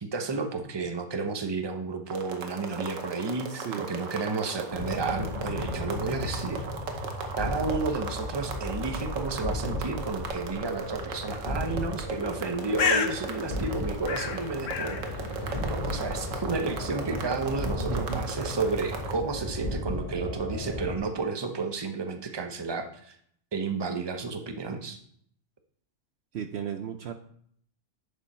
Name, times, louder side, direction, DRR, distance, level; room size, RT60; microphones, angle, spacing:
voice 1, 0.0-6.7 7.4-23.1 23.5-25.0, right 4 dB, 25° right, 5 dB, 0.8 m, -32 dB
sound 1, 2.1-19.1, right 4 dB, 90° right, 1.4 m, -38 dB
voice 2, 3.5-3.9 17.8-18.3 26.3-27.1, right 9 dB, 65° right, 7 dB, 0.8 m, -35 dB
sound 2, 4.7-21.0, left 1 dB, 40° left, 3.4 m, -35 dB
Bird, 12.3-19.9, left 5 dB, 75° left, 1.3 m, -35 dB
10.5 x 5.3 x 4.3 m, 0.64 s
omnidirectional pair, 1.3 m